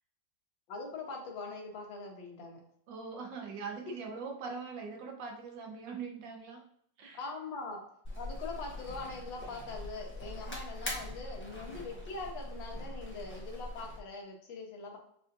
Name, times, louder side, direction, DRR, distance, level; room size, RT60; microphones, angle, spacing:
voice 1, 0.7-2.6 7.1-7.8 8.2-15.0, left 3 dB, 85° left, 0 dB, 1.7 m, -42 dB
voice 2, 2.9-6.6 7.0-7.2, right 5 dB, 75° right, 1 dB, 1.5 m, -42 dB
sound 1, 8.0-14.0, left 1 dB, 15° left, 0.5 m, -42 dB
6.0 x 2.6 x 2.6 m, 0.70 s
omnidirectional pair, 2.0 m